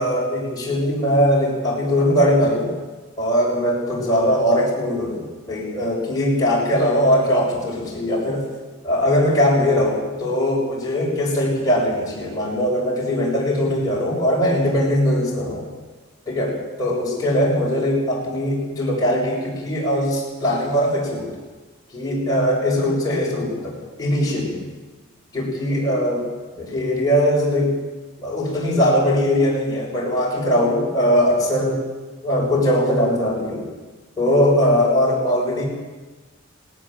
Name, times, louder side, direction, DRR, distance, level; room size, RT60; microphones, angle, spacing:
voice 1, 0.0-2.7 3.2-8.4 8.8-15.7 16.3-21.3 21.9-24.6 25.3-26.3 26.6-27.8 28.2-31.8 32.2-33.6 34.2-35.7, equal, 20° left, -4 dB, 6.6 m, -20 dB
18.5 x 18.5 x 7.6 m, 1.3 s
head